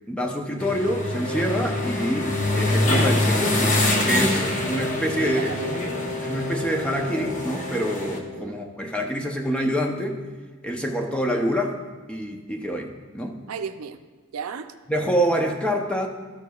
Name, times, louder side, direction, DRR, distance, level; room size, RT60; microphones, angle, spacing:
voice 1, 0.1-5.5 6.2-10.2 10.6-11.8 12.1-13.4 14.9-16.1, equal, 5° left, 2 dB, 0.6 m, -26 dB
sound 1, 0.6-8.2, left 1 dB, 35° left, 0.8 m, -25 dB
Wind instrument woodwind instrument, 1.2-8.5, left 2 dB, 85° left, 2.1 m, -33 dB
voice 2, 5.2-5.8 8.3-8.6 13.5-14.0 14.3-14.7, right 6 dB, 90° right, 9 dB, 0.4 m, -34 dB
13.0 x 6.6 x 2.3 m, 1.4 s
head